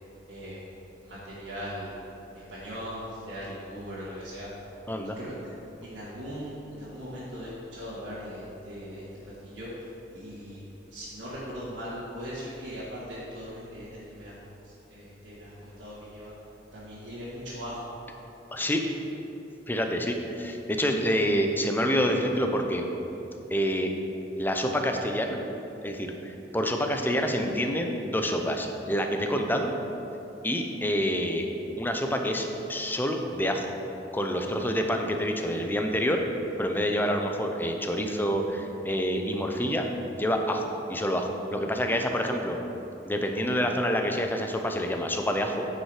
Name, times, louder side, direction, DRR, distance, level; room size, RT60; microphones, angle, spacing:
voice 1, 0.3-0.6 1.0-2.0 2.3-4.5 5.2-5.3 5.8-10.6 10.9-14.4 14.6-16.3 16.7-17.8, equal, 85° right, -11 dB, 1.9 m, -39 dB
voice 2, 18.5-18.8 19.7-22.9 23.5-23.9 24.4-25.4 25.8-29.7 30.4-31.5 31.8-33.7 34.1-36.2 36.6-39.9 40.1-40.6 40.9-42.6 43.0-45.7, equal, 10° left, 4 dB, 0.6 m, -27 dB
9.2 x 5.5 x 4.9 m, 3.0 s
head